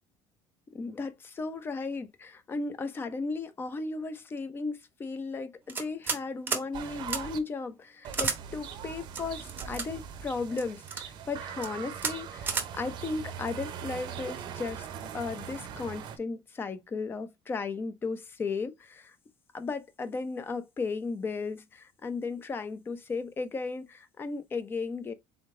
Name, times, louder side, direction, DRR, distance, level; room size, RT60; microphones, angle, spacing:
voice 1, 0.7-14.9 15.1-19.2 19.5-25.1, left 4 dB, 20° left, 0.6 m, -35 dB
sound 1, 5.7-6.2 6.5-6.7 7.1-7.2 8.1-8.4 9.1-9.9 10.6-11.0 11.5-11.7 12.0-12.1 12.5-12.7, right 5 dB, 20° right, 0.7 m, -31 dB
sound 2, 6.7-7.4 8.0-16.2, right 8 dB, 50° right, 0.7 m, -41 dB
3.7 x 3.5 x 3.6 m
cardioid pair, 155°, 10 cm